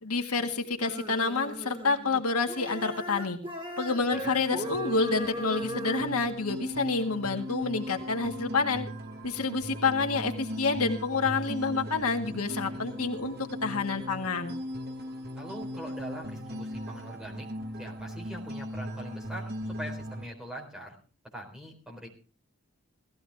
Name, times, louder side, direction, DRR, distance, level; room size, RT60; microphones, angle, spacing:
voice 1, 0.0-3.4 3.8-8.9 9.2-14.6, left 4 dB, 85° left, 4 dB, 1.8 m, -28 dB
sound 1, 0.8-2.2 2.5-6.1, right 1 dB, 20° right, 2.8 m, -38 dB
sound 2, 4.2-20.2, equal, 45° right, 1.6 m, -38 dB
voice 2, 15.4-17.5 17.8-21.0 21.3-22.1, equal, 5° right, -1 dB, 4.0 m, -42 dB
17.5 x 14.5 x 3.5 m, 0.36 s
head